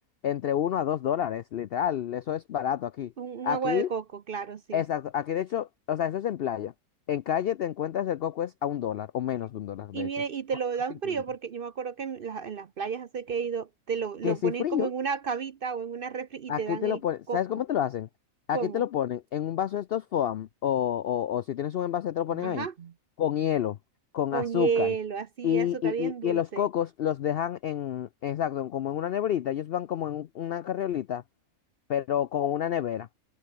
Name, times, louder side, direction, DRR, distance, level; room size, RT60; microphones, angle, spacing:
voice 1, 0.2-3.1 3.4-3.9 4.7-6.7 7.1-10.1 11.1-11.2 14.2-14.9 16.5-18.1 18.5-22.7 23.2-23.8 24.1-24.9 25.4-31.2 31.9-33.1, left 10 dB, 70° left, 0.5 m, -29 dB
voice 2, 3.2-4.8 9.9-17.0 17.3-17.4 18.5-18.8 22.3-22.9 24.3-26.7, right 6 dB, 50° right, 0.7 m, -32 dB
omnidirectional pair, 1.5 m